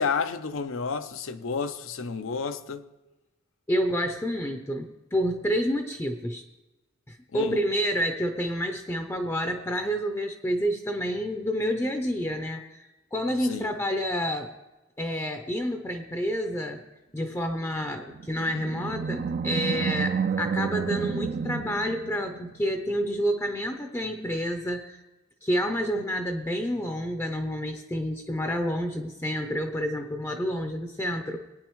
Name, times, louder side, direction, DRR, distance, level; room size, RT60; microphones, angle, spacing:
voice 1, 0.0-2.9 7.3-7.6 13.4-13.7, left 5 dB, 75° left, 0.6 m, -31 dB
voice 2, 3.7-6.4 7.1-12.8 13.1-14.5 15.0-16.8 17.1-25.0 25.4-31.4, equal, 15° left, 0.5 m, -29 dB
Animal, 18.0-22.6, right 6 dB, 40° right, 0.3 m, -30 dB
18.5 x 9.5 x 3.1 m
head